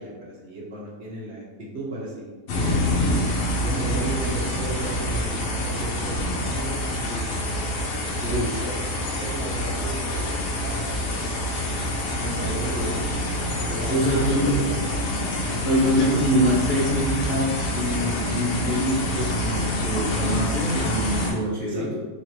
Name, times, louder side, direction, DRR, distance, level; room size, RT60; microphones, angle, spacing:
voice 1, 0.0-2.3 3.5-7.4 8.2-10.3 10.6-11.2 12.2-13.0 13.7-14.8 21.7-21.9, right 1 dB, 55° right, -3 dB, 1.1 m, -35 dB
sound 1, 2.5-21.3, left 1 dB, 75° left, 1.2 m, -26 dB
voice 2, 13.9-14.6 15.6-22.0, equal, 40° left, -8 dB, 1.0 m, -24 dB
4.2 x 3.2 x 3.1 m, 1.3 s
omnidirectional pair, 1.5 m